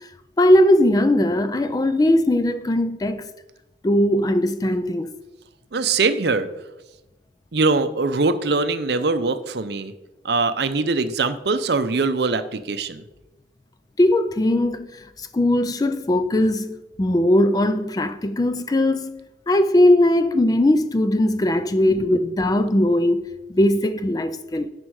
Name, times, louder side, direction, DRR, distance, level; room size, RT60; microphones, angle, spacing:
voice 1, 0.4-3.3 3.8-5.1 14.0-14.9 15.2-23.2 23.5-24.7, left 1 dB, 20° left, 0.3 m, -19 dB
voice 2, 5.7-6.5 7.5-9.9 10.2-13.0 21.9-22.1, right 3 dB, 60° right, 0.6 m, -22 dB
9.8 x 5.3 x 4.7 m
head